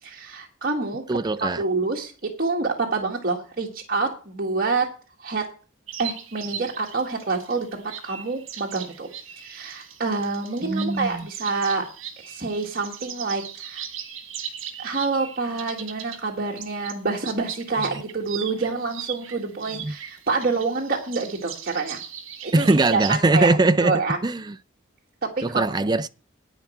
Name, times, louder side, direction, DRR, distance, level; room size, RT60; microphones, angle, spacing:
voice 1, 0.0-1.0 1.4-4.9 5.2-5.5 6.0-9.1 9.4-11.9 12.2-13.8 14.8-22.0 22.4-24.2 25.2-25.6, right 3 dB, 45° right, 1.8 m, -27 dB
voice 2, 1.1-1.6 10.6-11.3 17.9-18.0 19.8-20.0 22.5-24.6 25.4-26.1, right 2 dB, 20° right, 0.5 m, -21 dB
sound 1, 5.9-16.2 16.6-23.2, right 9 dB, 70° right, 1.8 m, -38 dB
11.0 x 9.3 x 4.5 m
head